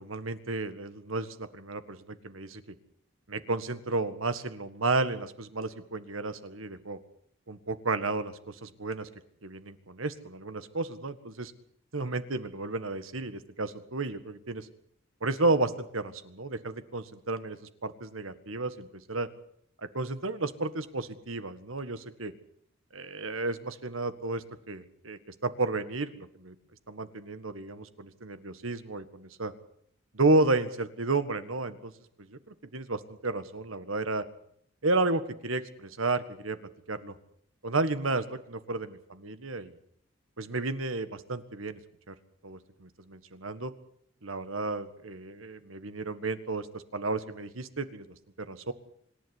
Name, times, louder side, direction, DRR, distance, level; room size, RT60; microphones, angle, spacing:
voice 1, 0.0-2.6 3.3-7.0 7.5-9.1 9.4-11.5 11.9-14.7 15.2-17.6 17.8-19.3 19.9-22.3 22.9-26.5 26.9-29.5 30.1-31.9 32.2-32.4 32.7-34.2 34.8-36.6 36.9-37.1 37.6-39.7 40.4-41.8 42.1-42.2 42.4-43.7 44.2-48.1 48.4-48.7, right 3 dB, 90° right, 11 dB, 1.7 m, -32 dB
26.0 x 11.5 x 9.8 m, 0.68 s
head